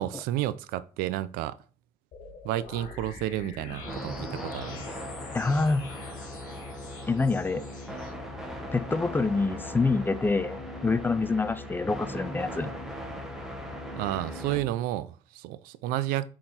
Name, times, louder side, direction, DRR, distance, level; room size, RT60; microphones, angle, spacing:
voice 1, 0.0-1.6 2.4-4.9 13.9-16.3, right 14 dB, 85° right, 0.5 m, -31 dB
sound 1, 2.1-8.1, left 4 dB, 60° left, 2.0 m, -45 dB
sound 2, 3.8-14.6, equal, 5° right, 1.2 m, -39 dB
voice 2, 5.3-5.8 7.1-7.6 8.7-12.7, left 3 dB, 15° left, 0.4 m, -26 dB
6.4 x 4.0 x 4.3 m
cardioid pair, 125°, 15 cm